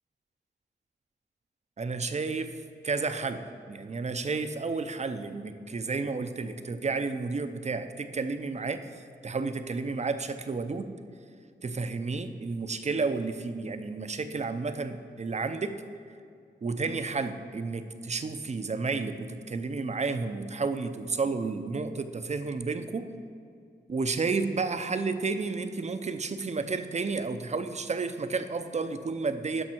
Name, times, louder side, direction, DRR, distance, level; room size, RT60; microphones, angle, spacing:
voice 1, 1.8-2.6 2.8-8.9 9.2-10.9 11.6-15.8 16.6-23.1 23.9-29.6, right 4 dB, 35° right, 9 dB, 0.5 m, -31 dB
12.0 x 5.5 x 4.4 m, 2.3 s
wide cardioid pair, 85°, 19 cm